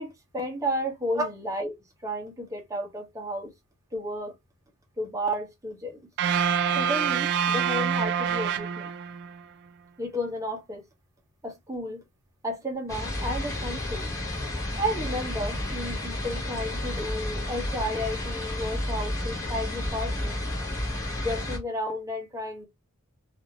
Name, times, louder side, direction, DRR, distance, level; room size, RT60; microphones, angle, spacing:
voice 1, 0.0-1.7 2.0-3.5 3.9-4.3 5.0-6.1 6.7-8.9 10.0-10.8 11.4-12.0 12.4-14.1 14.8-20.4 21.2-22.7, equal, 15° right, 0.9 m, -32 dB
sound 1, 6.2-9.4, right 7 dB, 50° right, 0.3 m, -26 dB
sound 2, 12.9-21.6, left 1 dB, 15° left, 1.1 m, -31 dB
2.7 x 2.5 x 2.8 m
head